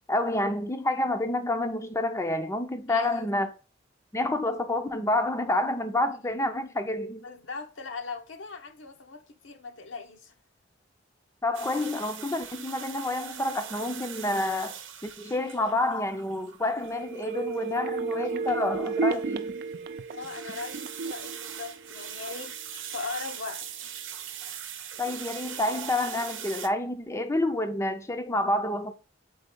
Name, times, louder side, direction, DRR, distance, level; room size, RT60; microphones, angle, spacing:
voice 1, 0.1-3.5 4.1-7.2 11.4-14.8 15.0-19.5 25.0-28.9, left 2 dB, 15° left, 0.5 m, -28 dB
voice 2, 2.9-3.3 7.2-10.3 20.1-22.6 22.8-24.0, left 4 dB, 75° left, 0.9 m, -39 dB
sound 1, 11.5-26.7, right 9 dB, 90° right, 0.8 m, -42 dB
sound 2, 16.8-22.5 22.8-22.9, right 4 dB, 55° right, 0.4 m, -33 dB
4.5 x 4.0 x 5.3 m
head